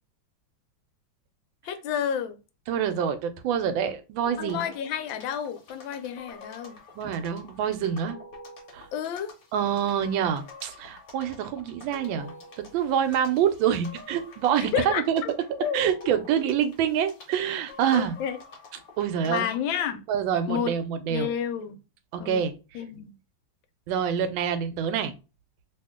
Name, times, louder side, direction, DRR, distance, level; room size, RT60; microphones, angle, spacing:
voice 1, 1.6-2.4 4.4-6.8 8.9-9.3 14.6-15.3 15.6-15.9 17.9-18.4 19.2-20.0 20.5-20.7 21.1-21.8 22.2-22.4 22.7-23.1, left 8 dB, 85° left, 1.3 m, -30 dB
voice 2, 2.7-4.7 7.0-8.2 8.7-8.9 9.5-15.2 15.7-18.2 19.0-19.5 20.1-21.3 22.1-22.5 23.9-25.1, right 8 dB, 85° right, 1.3 m, -26 dB
sound 1, 4.2-19.6, left 2 dB, 55° left, 1.3 m, -48 dB
2.9 x 2.7 x 3.5 m
omnidirectional pair, 2.1 m